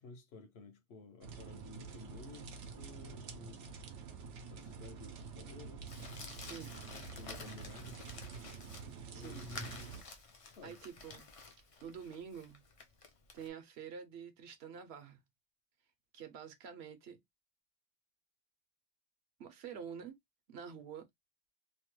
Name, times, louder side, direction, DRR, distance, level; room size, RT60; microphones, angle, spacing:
voice 1, 0.0-3.6 4.4-5.9 7.0-8.0 9.1-9.9 10.5-10.8, left 3 dB, 65° left, 0.9 m, -53 dB
sound 1, 1.2-10.0, right 5 dB, 85° right, 1.0 m, -48 dB
Crumpling crinkling, 5.9-13.5, left 4 dB, 45° left, 0.4 m, -51 dB
voice 2, 6.4-6.7 9.1-9.5 10.6-11.3 11.8-12.6 13.3-15.2 16.1-17.2 19.4-20.2 20.5-21.1, right 7 dB, 70° right, 0.9 m, -48 dB
2.9 x 2.2 x 3.0 m
omnidirectional pair, 1.2 m